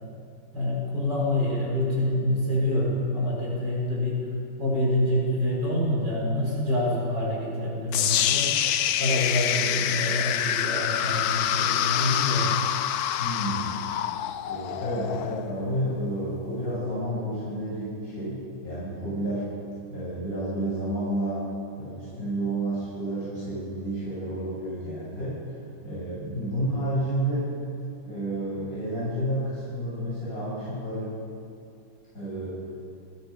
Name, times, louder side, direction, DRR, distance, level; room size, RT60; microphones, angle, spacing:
voice 1, 0.5-4.2 4.6-8.6 9.0-12.6, left 1 dB, 60° right, -5 dB, 6.5 m, -26 dB
sound 1, 7.9-16.0, left 11 dB, 65° left, 1.0 m, -26 dB
voice 2, 13.2-13.7 14.4-19.5 19.9-21.5 21.8-25.4 25.8-27.5 28.1-31.1 32.1-32.6, right 1 dB, 45° left, -9 dB, 7.7 m, -30 dB
28.0 x 20.0 x 5.5 m, 2.5 s
omnidirectional pair, 2.1 m